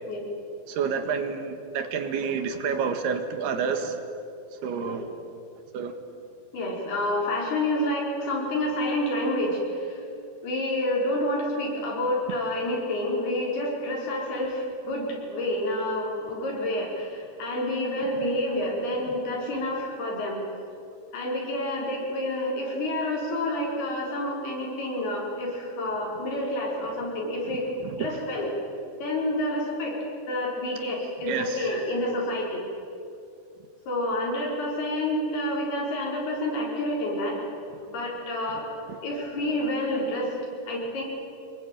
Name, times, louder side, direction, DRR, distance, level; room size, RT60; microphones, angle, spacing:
voice 1, 0.7-4.0 4.6-5.1 5.7-5.9 27.8-28.2 31.3-31.7, right 6 dB, 75° right, 7 dB, 3.5 m, -29 dB
voice 2, 6.5-9.6 10.4-20.4 21.1-27.7 28.0-28.5 29.0-29.9 30.3-32.6 33.9-37.3 37.9-38.6 39.0-40.3 40.7-41.0, left 1 dB, 65° left, -2 dB, 6.6 m, -28 dB
25.5 x 21.5 x 9.2 m, 2.6 s
omnidirectional pair, 4.8 m